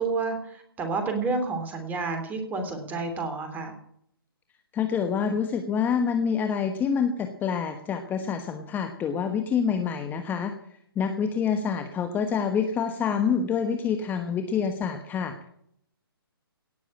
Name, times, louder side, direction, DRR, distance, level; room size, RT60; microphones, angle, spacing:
voice 1, 0.0-3.7, right 4 dB, 15° right, 6 dB, 3.1 m, -30 dB
voice 2, 4.7-10.5 10.9-15.4, left 6 dB, 15° left, 6 dB, 1.2 m, -27 dB
18.0 x 7.2 x 8.6 m, 0.68 s
hypercardioid pair, 140°, 13 cm